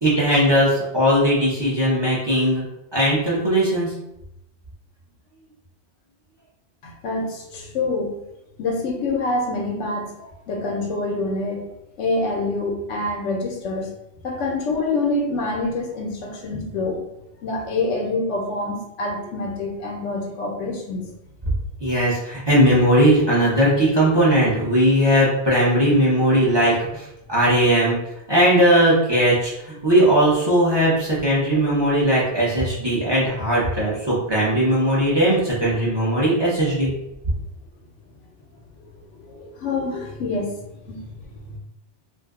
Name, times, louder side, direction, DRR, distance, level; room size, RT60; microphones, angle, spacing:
voice 1, 0.0-2.6 2.9-3.9 21.8-28.0 28.3-36.9, equal, 25° right, -6 dB, 0.7 m, -18 dB
voice 2, 6.8-8.1 8.6-10.2 10.5-11.6 12.0-13.9 14.2-17.0 17.4-21.1 39.2-40.5 40.9-41.0, left 2 dB, 90° left, 1 dB, 1.0 m, -26 dB
2.6 x 2.2 x 3.5 m, 0.86 s
omnidirectional pair, 1.2 m